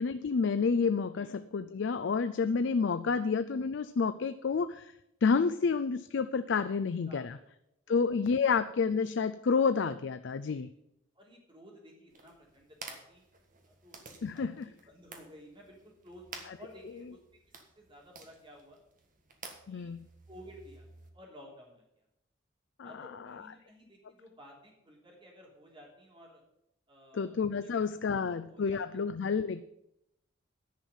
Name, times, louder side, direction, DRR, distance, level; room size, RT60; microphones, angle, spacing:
voice 1, 0.0-4.9 5.2-7.4 7.9-10.7 14.2-14.7 19.7-20.0 22.8-23.1 27.1-29.6, left 5 dB, 60° left, 11 dB, 0.4 m, -29 dB
voice 2, 7.1-7.4 7.9-8.0 10.4-10.6 11.1-13.2 13.6-17.2 17.5-18.8 19.7-19.9 20.3-22.0 22.8-26.4 26.9-27.8 28.2-29.0, equal, 25° right, -2 dB, 3.2 m, -54 dB
sound 1, 12.1-21.1, right 4 dB, 40° right, 1.5 m, -52 dB
10.5 x 5.6 x 8.6 m, 0.82 s
head